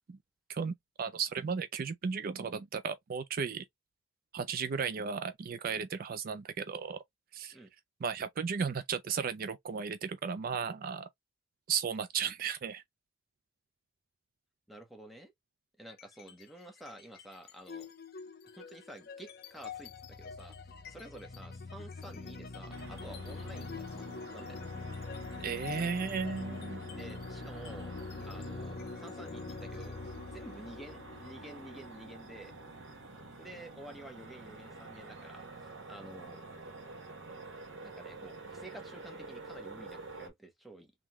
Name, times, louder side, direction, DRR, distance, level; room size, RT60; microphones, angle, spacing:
voice 1, 0.5-3.6 4.3-7.0 7.3-7.6 8.0-11.1 11.7-12.8 25.4-26.8, right 6 dB, 50° right, 0.4 m, -35 dB
voice 2, 14.7-15.3 15.8-17.9 18.5-20.6 20.9-24.6 26.9-27.9 28.2-32.5 33.4-36.4 37.8-40.9, right 1 dB, ahead, 1.2 m, -50 dB
sound 1, 15.9-16.4 16.8-33.4, left 4 dB, 55° left, 0.6 m, -44 dB
sound 2, 22.7-40.3, right 3 dB, 75° right, 1.7 m, -49 dB
3.5 x 3.5 x 3.0 m
head